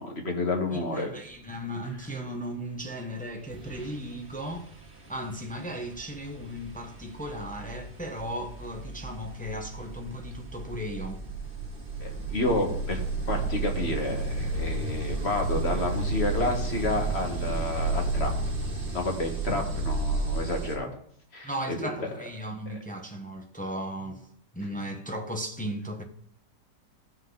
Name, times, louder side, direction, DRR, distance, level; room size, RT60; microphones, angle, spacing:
voice 1, 0.0-1.1 12.0-13.0 13.3-18.3 18.9-20.9 21.3-22.1, left 2 dB, 40° left, 1.8 m, -30 dB
voice 2, 0.7-4.7 5.1-11.2 21.4-24.3 24.5-26.0, equal, 5° left, 0.8 m, -36 dB
sound 1, 3.1-3.2 3.5-20.8, right 3 dB, 30° right, 1.8 m, -33 dB
15.5 x 5.7 x 4.0 m
omnidirectional pair, 1.9 m